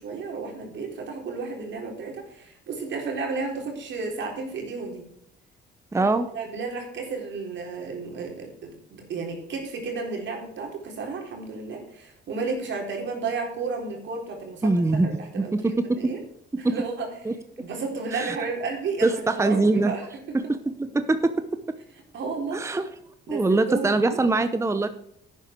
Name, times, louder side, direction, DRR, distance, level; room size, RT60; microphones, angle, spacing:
voice 1, 0.0-5.0 5.9-16.2 16.6-17.1 17.6-20.0 20.4-20.5 22.1-22.6 23.3-24.2, right 4 dB, 65° right, 1 dB, 4.1 m, -33 dB
voice 2, 5.9-6.3 14.6-15.1 15.4-16.1 16.6-16.8 17.3-17.4 18.1-18.4 19.0-19.9 20.3-20.4 20.8-21.3 22.5-22.9 23.3-24.9, right 2 dB, 15° right, 10 dB, 0.8 m, -22 dB
11.5 x 9.1 x 4.6 m, 0.74 s
cardioid pair, 90°, 20 cm